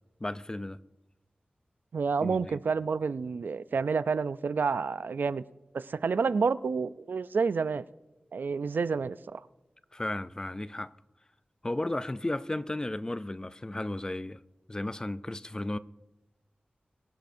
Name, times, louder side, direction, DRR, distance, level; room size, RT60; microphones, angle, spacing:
voice 1, 0.2-0.8 2.2-2.6 9.9-10.9 11.6-14.4 14.7-15.8, left 1 dB, 20° left, 0.4 m, -34 dB
voice 2, 1.9-5.4 5.7-7.8 8.3-9.4, right 5 dB, 80° right, 0.4 m, -29 dB
22.5 x 10.5 x 2.6 m
wide cardioid pair, 80°, 3 cm